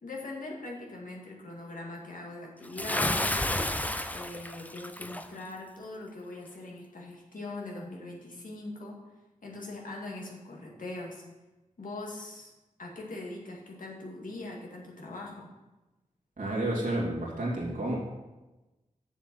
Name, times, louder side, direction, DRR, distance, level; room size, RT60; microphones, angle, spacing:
voice 1, 0.0-3.6 4.1-9.0 9.4-11.2 11.8-12.5 12.8-15.5, left 2 dB, 80° left, -2 dB, 2.1 m, -41 dB
Bathtub (filling or washing) / Splash splatter, 2.8-5.3, left 1 dB, 10° left, 0.5 m, -31 dB
voice 2, 16.4-18.0, right 1 dB, 80° right, -3 dB, 2.7 m, -30 dB
7.2 x 7.1 x 6.0 m, 1.1 s
wide cardioid pair, 80°, 14 cm